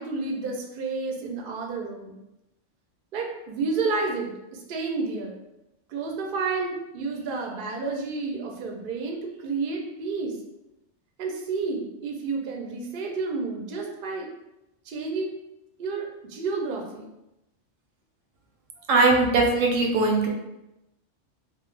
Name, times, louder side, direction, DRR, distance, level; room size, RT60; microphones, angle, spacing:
voice 1, 0.0-2.2 3.1-5.4 5.9-10.3 11.2-14.3 14.9-15.3 15.8-17.1, right 4 dB, 60° right, 1 dB, 0.5 m, -30 dB
voice 2, 18.9-20.3, right 3 dB, 90° right, 1 dB, 1.0 m, -20 dB
2.2 x 2.0 x 3.1 m, 0.92 s
omnidirectional pair, 1.3 m